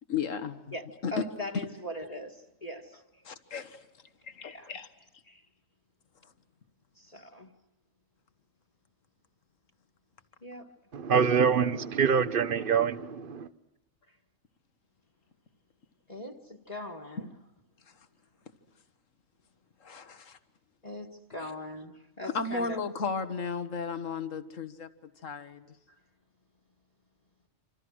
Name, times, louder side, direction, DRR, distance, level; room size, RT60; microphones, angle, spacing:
voice 1, 0.1-0.7 1.0-1.1 3.5-3.8 4.2-4.9 19.8-20.4 22.2-24.9 25.2-25.6, left 5 dB, 75° left, 1.9 m, -34 dB
voice 2, 0.7-2.8 4.5-4.7 5.3-5.4 6.9-7.5 10.4-10.7 14.1-14.2 16.1-17.4 20.8-22.8 25.9-26.0, left 1 dB, 30° left, 1.8 m, -41 dB
voice 3, 10.9-13.5, right 6 dB, 45° right, 1.2 m, -25 dB
27.5 x 26.5 x 6.3 m
omnidirectional pair, 1.3 m